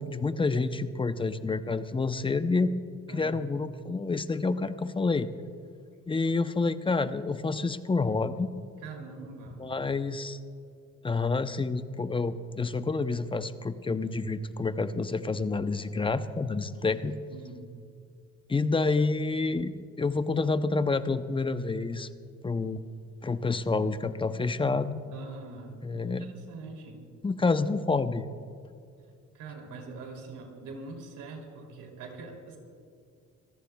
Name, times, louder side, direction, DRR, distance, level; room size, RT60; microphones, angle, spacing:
voice 1, 0.0-2.7 3.1-5.3 6.1-8.5 9.6-10.4 11.0-17.2 18.5-22.1 22.4-22.8 23.2-25.0 25.8-26.3 27.2-28.3, left 3 dB, 15° left, 11 dB, 0.6 m, -28 dB
voice 2, 3.1-3.4 8.8-9.6 17.3-17.8 25.1-27.1 29.3-32.6, right 3 dB, 85° right, 2 dB, 3.0 m, -43 dB
26.5 x 15.0 x 2.3 m, 2.3 s
cardioid pair, 90°, 30 cm